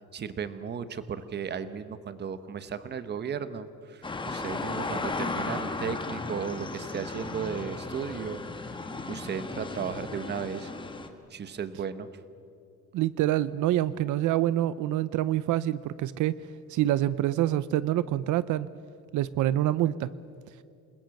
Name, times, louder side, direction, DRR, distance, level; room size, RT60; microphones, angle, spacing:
voice 1, 0.1-8.7 9.1-10.7 11.3-12.1, right 7 dB, 35° right, 13 dB, 1.1 m, -35 dB
sound 1, 4.0-11.1, left 3 dB, 15° left, 1.4 m, -35 dB
voice 2, 12.9-16.3 16.7-18.7 19.1-20.1, right 13 dB, 80° right, 17 dB, 0.7 m, -26 dB
28.0 x 21.0 x 7.8 m, 2.4 s
cardioid pair, 180°, 30 cm